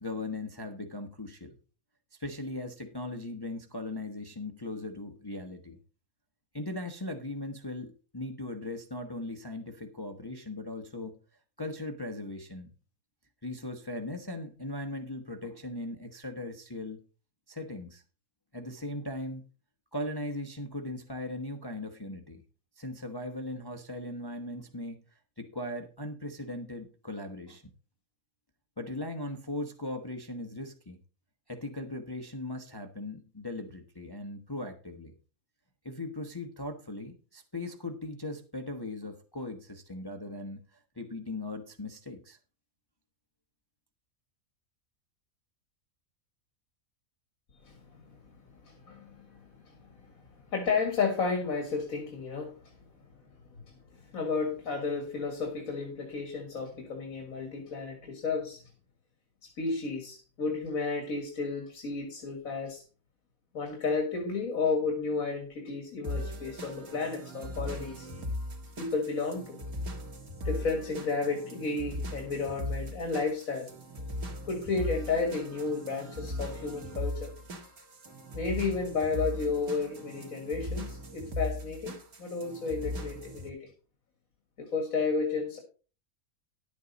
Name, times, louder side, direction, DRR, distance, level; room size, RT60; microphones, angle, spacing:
voice 1, 0.0-1.5 2.2-5.8 6.5-11.2 11.6-12.7 13.4-17.0 17.5-18.0 18.5-19.4 19.9-22.4 22.8-27.6 28.8-31.0 31.5-35.1 35.8-42.4, left 1 dB, 20° left, 4 dB, 1.0 m, -39 dB
voice 2, 48.6-49.4 49.6-49.7 50.5-52.6 53.6-53.7 54.1-58.6 59.4-62.8 63.5-68.1 68.8-69.6 70.4-73.7 74.4-77.3 78.3-83.7 84.6-85.6, left 4 dB, 75° left, 3 dB, 2.4 m, -32 dB
sound 1, 66.0-83.5, left 1 dB, 80° right, 2.2 m, -38 dB
11.0 x 8.4 x 4.1 m, 0.35 s
omnidirectional pair, 1.5 m